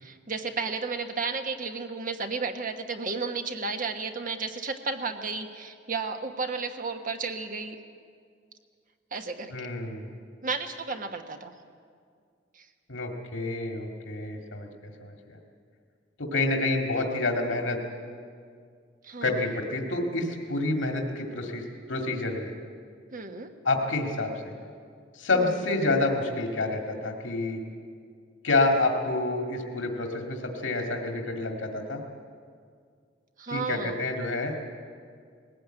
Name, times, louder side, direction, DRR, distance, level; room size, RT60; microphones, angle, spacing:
voice 1, 0.0-7.8 9.1-9.5 10.4-11.5 12.5-12.6 19.0-19.5 23.1-23.5 25.3-25.6 33.4-34.0, right 4 dB, 45° right, 6 dB, 1.3 m, -33 dB
voice 2, 9.5-10.1 12.9-15.4 16.2-17.8 19.2-22.5 23.6-24.5 25.1-27.6 28.4-32.0 33.5-34.7, left 2 dB, 80° left, 2 dB, 2.1 m, -28 dB
20.0 x 16.0 x 9.0 m, 2.1 s
head